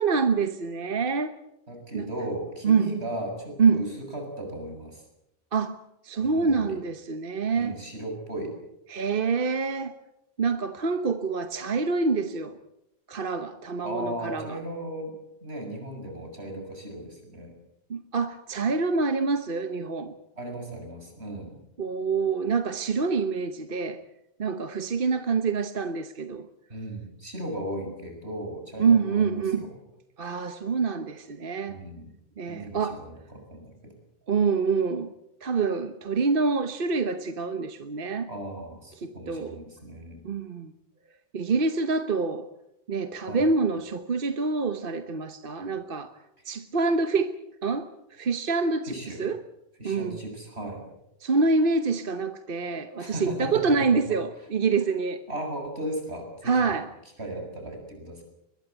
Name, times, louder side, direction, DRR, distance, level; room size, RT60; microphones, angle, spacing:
voice 1, 0.0-1.3 1.9-2.1 2.6-2.9 3.6-3.9 5.5-5.8 6.0-7.8 8.9-10.0 10.4-12.6 13.1-14.6 17.9-20.1 21.8-24.0 24.4-26.5 28.8-29.7 30.2-31.8 32.4-33.0 34.3-35.1 35.4-38.3 39.0-39.6 40.2-40.7 41.3-42.5 42.9-46.1 46.4-49.4 49.8-50.2 51.2-55.2 56.4-56.9, right 4 dB, 60° right, 1.2 m, -26 dB
voice 2, 1.7-5.0 6.2-6.8 7.6-8.5 13.8-15.1 15.4-17.5 20.4-21.6 26.7-29.8 31.7-32.1 32.5-33.9 38.3-40.2 43.3-43.5 46.4-46.6 48.8-49.3 49.8-50.8 53.0-53.6 55.3-56.8 57.2-58.2, right 1 dB, 85° right, 7.3 m, -36 dB
22.0 x 21.5 x 8.1 m
omnidirectional pair, 1.1 m